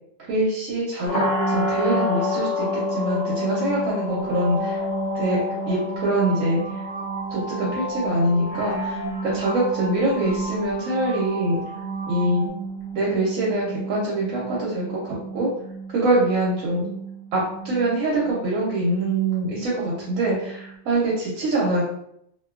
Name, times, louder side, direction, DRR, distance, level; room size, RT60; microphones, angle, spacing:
voice 1, 0.3-4.8 5.1-5.4 5.7-6.6 7.3-11.6 12.1-12.4 12.9-15.5 15.9-16.9 17.3-21.8, right 1 dB, 85° right, -6 dB, 1.1 m, -24 dB
sound 1, 1.1-20.9, equal, 60° left, 0.8 m, -30 dB
sound 2, 4.1-12.5, right 1 dB, 40° right, 0.8 m, -35 dB
2.5 x 2.2 x 2.3 m, 0.72 s
omnidirectional pair, 1.4 m